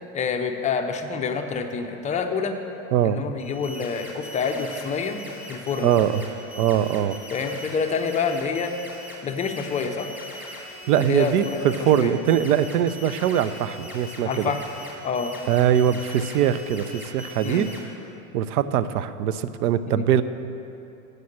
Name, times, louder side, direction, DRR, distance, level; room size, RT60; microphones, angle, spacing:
voice 1, 0.1-2.6 3.0-5.2 5.5-5.9 7.3-8.7 9.2-10.1 11.0-12.1 14.3-14.6 15.0-15.4 17.4-17.7 19.9-20.1, left 5 dB, 15° left, 5 dB, 0.4 m, -27 dB
sound 1, 3.4-17.8, left 1 dB, 5° right, 1.7 m, -41 dB
voice 2, 5.8-6.2 6.6-7.2 10.9-14.5 15.5-17.7 18.3-20.2, right 10 dB, 85° right, 14 dB, 0.6 m, -22 dB
7.7 x 6.6 x 7.2 m, 2.8 s
supercardioid pair, 120°, 44 cm